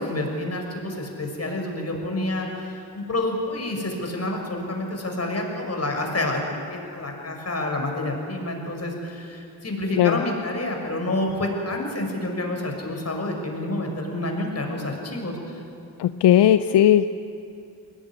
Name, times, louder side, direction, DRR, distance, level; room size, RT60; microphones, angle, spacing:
voice 1, 0.0-6.4 6.7-15.6, left 1 dB, 40° left, 2 dB, 6.2 m, -28 dB
voice 2, 16.0-17.1, left 11 dB, 85° left, 11 dB, 0.7 m, -17 dB
21.5 x 18.5 x 9.9 m, 2.5 s
cardioid pair, 60°, 40 cm